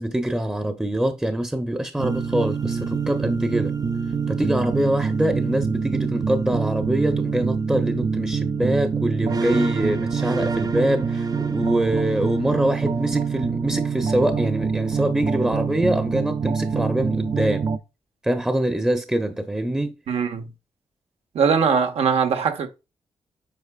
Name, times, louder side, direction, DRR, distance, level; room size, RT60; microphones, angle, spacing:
voice 1, 0.0-3.7 4.3-17.7 18.2-19.9, right 1 dB, 5° right, 0.8 m, -24 dB
sound 1, 2.0-17.8, right 5 dB, 40° right, 0.5 m, -25 dB
voice 2, 20.1-20.4 21.3-22.7, right 6 dB, 80° right, 1.3 m, -21 dB
8.4 x 5.0 x 2.4 m
wide cardioid pair, 110°, 10 cm